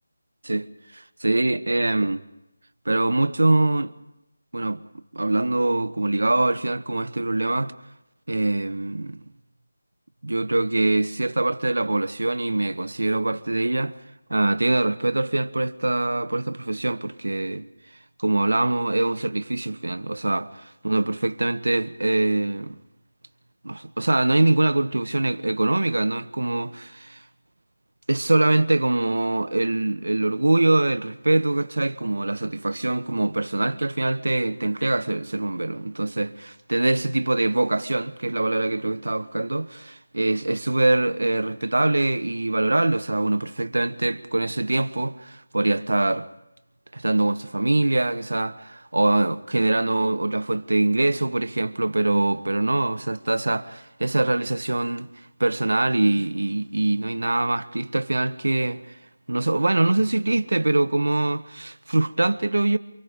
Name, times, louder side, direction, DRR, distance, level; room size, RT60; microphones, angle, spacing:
voice 1, 0.9-2.2 2.8-3.9 4.5-4.8 5.1-7.7 8.3-9.2 10.2-13.9 14.3-17.7 18.2-22.8 23.6-27.2 28.1-46.3 46.9-55.1 55.4-59.0 59.3-62.8, right 2 dB, 85° right, 1.2 m, -23 dB
28.5 x 24.5 x 5.2 m
figure-of-eight pair, 175°, 0 cm